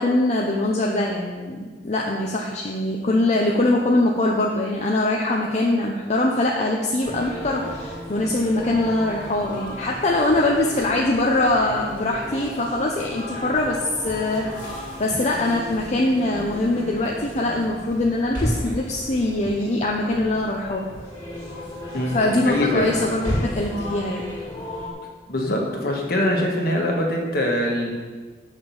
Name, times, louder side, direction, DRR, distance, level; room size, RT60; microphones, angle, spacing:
voice 1, 0.0-20.8 22.0-24.2, left 2 dB, 40° left, -1 dB, 0.7 m, -23 dB
sound 1, 7.0-24.9, left 1 dB, 25° left, 2.2 m, -34 dB
voice 2, 22.4-22.9 25.3-27.9, left 1 dB, 55° left, 0 dB, 1.6 m, -23 dB
6.0 x 5.8 x 7.1 m, 1.4 s
head